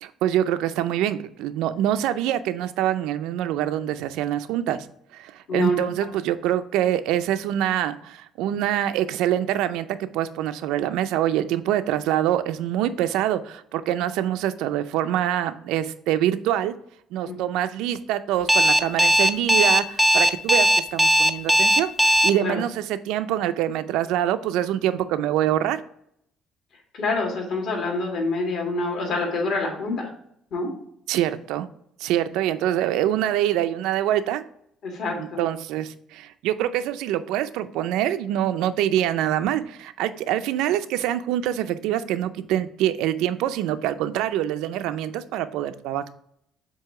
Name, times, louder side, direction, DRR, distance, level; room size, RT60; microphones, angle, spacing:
voice 1, 0.0-4.9 5.1-9.9 10.1-16.7 17.1-25.8 31.1-31.7 32.0-34.4 35.2-46.1, right 12 dB, 90° right, 11 dB, 0.4 m, -25 dB
voice 2, 5.5-5.9 17.2-17.3 22.4-22.6 27.0-30.1 30.5-30.7 34.8-35.4, left 2 dB, 50° left, -1 dB, 2.0 m, -26 dB
Alarm, 18.5-22.3, equal, ahead, 0.3 m, -17 dB
7.6 x 2.8 x 4.8 m, 0.71 s
cardioid pair, 165°, 0 cm